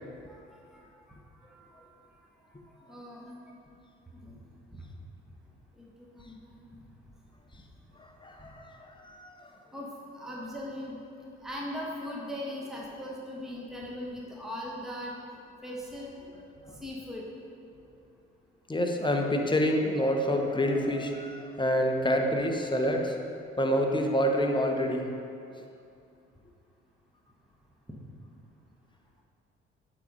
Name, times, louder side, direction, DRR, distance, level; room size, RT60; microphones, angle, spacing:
voice 1, 1.4-1.8 2.6-3.4 4.1-4.4 4.7-4.8 5.8-6.8 8.3-8.5 9.7-9.9 10.1-11.0 11.4-15.1 15.6-16.1 16.7-17.3, left 1 dB, ahead, -4 dB, 1.2 m, -40 dB
voice 2, 8.0-9.5 18.7-23.2 23.6-25.1, equal, 15° left, 3 dB, 0.9 m, -27 dB
8.2 x 4.1 x 5.0 m, 2.5 s
figure-of-eight pair, 50°, 32 cm